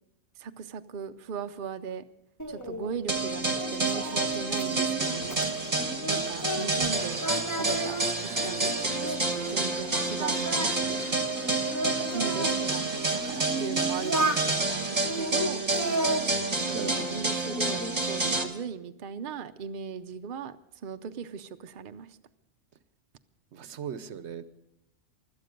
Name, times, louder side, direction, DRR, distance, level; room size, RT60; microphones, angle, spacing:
voice 1, 0.4-2.0 2.5-7.2 7.5-10.6 10.9-11.2 11.8-16.2 16.6-20.6 20.8-22.2, right 6 dB, 55° right, 8 dB, 0.7 m, -38 dB
Singing, 2.4-6.9 7.2-9.6 9.9-12.5 13.1-14.5 15.0-17.1 17.4-18.0, right 2 dB, 15° left, 1.4 m, -34 dB
sound 1, 3.1-18.4, right 2 dB, 35° right, 1.5 m, -29 dB
sound 2, 6.8-13.2, left 1 dB, 70° left, 7.4 m, -48 dB
voice 2, 8.3-8.7 16.7-17.2 23.5-24.4, right 7 dB, 75° right, 13 dB, 1.0 m, -39 dB
16.5 x 12.0 x 5.2 m, 0.82 s
omnidirectional pair, 1.2 m